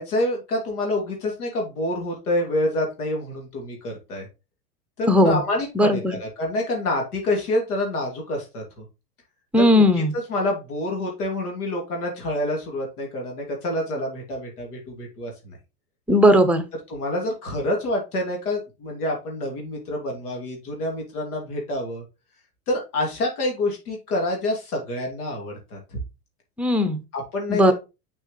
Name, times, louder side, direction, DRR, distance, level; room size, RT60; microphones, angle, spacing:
voice 1, 0.0-4.3 5.0-8.8 9.6-15.6 16.9-22.0 22.7-26.0 27.1-27.7, left 1 dB, 75° left, 0 dB, 2.9 m, -27 dB
voice 2, 5.1-5.4 5.8-6.2 9.5-10.1 16.1-16.6 26.6-27.0 27.5-27.7, equal, 5° right, 10 dB, 0.8 m, -17 dB
6.3 x 5.4 x 3.2 m, 0.27 s
hypercardioid pair, 100°, 45 cm